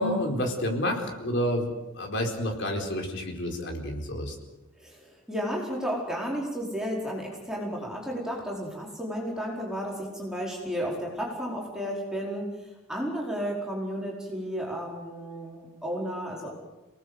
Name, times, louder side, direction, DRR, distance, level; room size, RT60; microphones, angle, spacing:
voice 1, 0.0-4.3, equal, 55° left, 2 dB, 4.4 m, -29 dB
voice 2, 4.8-16.5, equal, 5° right, -3 dB, 4.7 m, -33 dB
27.5 x 19.0 x 8.2 m, 1.1 s
head